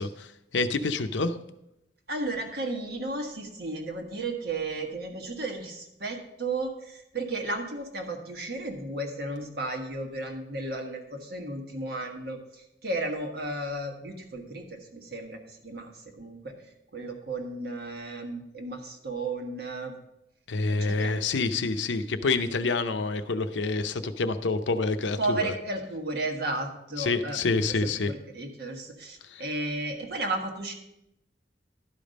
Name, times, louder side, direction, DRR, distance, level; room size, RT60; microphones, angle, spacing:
voice 1, 0.0-1.4 20.5-25.5 27.0-28.1 29.2-29.4, left 3 dB, 85° left, 10 dB, 0.6 m, -27 dB
voice 2, 2.1-15.9 16.2-16.5 16.9-19.9 20.7-21.1 25.2-27.4 27.7-30.7, right 2 dB, 60° right, 3 dB, 1.4 m, -34 dB
12.0 x 5.2 x 5.2 m, 0.85 s
head